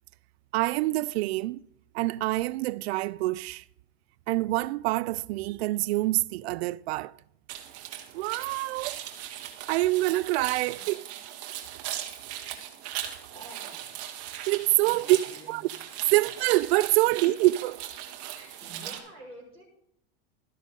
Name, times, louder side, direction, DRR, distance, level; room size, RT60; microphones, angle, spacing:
voice 1, 0.5-1.6 1.9-3.6 4.3-7.1 8.1-9.0 9.7-11.0 14.5-15.2 15.5-15.6 16.1-17.8, right 18 dB, 75° right, 0.5 m, -26 dB
sound 1, 7.5-19.0, right 11 dB, 45° right, 1.8 m, -39 dB
voice 2, 13.3-13.9 14.8-15.6 16.0-16.3 17.0-17.1 18.3-19.6, right 1 dB, 20° left, 5.4 m, -49 dB
13.0 x 10.5 x 3.8 m
supercardioid pair, 125°, 32 cm